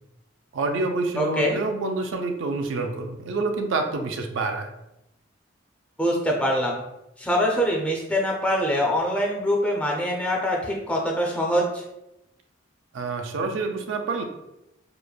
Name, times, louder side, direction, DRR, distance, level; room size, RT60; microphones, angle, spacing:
voice 1, 0.5-4.7 12.9-14.2, right 3 dB, 80° right, 5 dB, 0.3 m, -27 dB
voice 2, 1.2-1.6 6.0-6.8 7.2-11.8, equal, 5° left, -1 dB, 0.3 m, -24 dB
3.1 x 2.0 x 2.2 m, 0.89 s
head